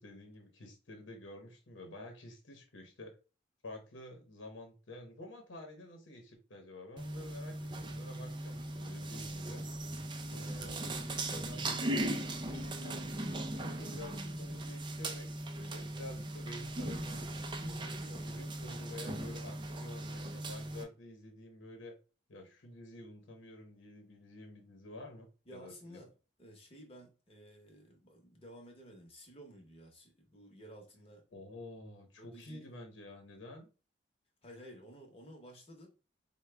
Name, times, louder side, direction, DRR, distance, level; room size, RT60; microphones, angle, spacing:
voice 1, 0.0-3.2 3.6-9.6 10.3-13.0 13.5-21.9 22.3-26.1 31.3-33.7, left 1 dB, 80° left, 0.8 m, -50 dB
sound 1, 7.0-20.8, right 1 dB, 25° right, 0.4 m, -39 dB
voice 2, 8.9-9.5 18.1-18.3 25.5-26.1 26.4-31.2 32.2-32.7 34.4-35.9, equal, 30° left, 0.9 m, -54 dB
4.5 x 2.2 x 3.3 m
head